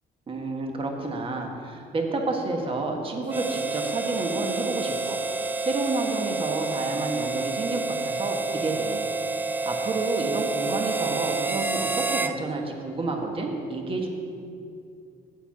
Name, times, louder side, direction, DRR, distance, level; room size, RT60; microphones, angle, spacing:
voice 1, 0.3-5.2 5.6-9.1 9.6-14.1, right 3 dB, 30° right, 2 dB, 1.3 m, -30 dB
Harmonica, 3.3-12.4, right 3 dB, 10° right, 0.3 m, -29 dB
8.8 x 7.0 x 6.0 m, 2.5 s
cardioid pair, 120°, 18 cm